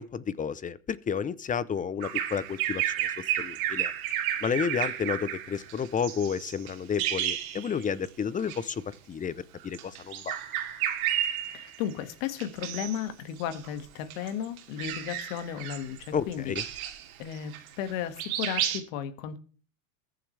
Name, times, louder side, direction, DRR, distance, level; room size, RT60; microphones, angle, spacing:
voice 1, 0.0-3.9 4.4-10.4 16.1-16.6, left 7 dB, 20° left, 0.7 m, -31 dB
Bird vocalization bird call bird song, 2.0-8.1 8.4-8.6 9.6-11.9 12.4-13.0 13.4-17.9 18.2-18.8, right 11 dB, 75° right, 2.7 m, -32 dB
voice 2, 11.5-16.5 17.2-17.5 17.8-19.4, left 9 dB, 65° left, 2.0 m, -34 dB
21.5 x 7.4 x 3.4 m
hypercardioid pair, 105°, 43 cm